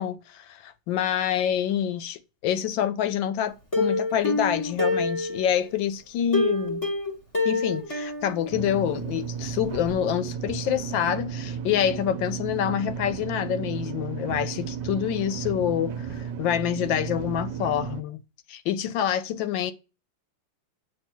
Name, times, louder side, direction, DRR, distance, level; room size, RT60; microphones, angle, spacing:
voice 1, 0.0-6.8 7.4-18.2 18.5-19.7, left 10 dB, 75° left, 1.2 m, -27 dB
Plucked string instrument, 3.7-5.7 6.3-9.1 9.4-9.5 9.9-10.0, left 2 dB, 20° left, 1.3 m, -27 dB
sound 1, 8.5-18.0, right 7 dB, 65° right, 1.3 m, -34 dB
7.6 x 2.9 x 4.4 m
omnidirectional pair, 2.2 m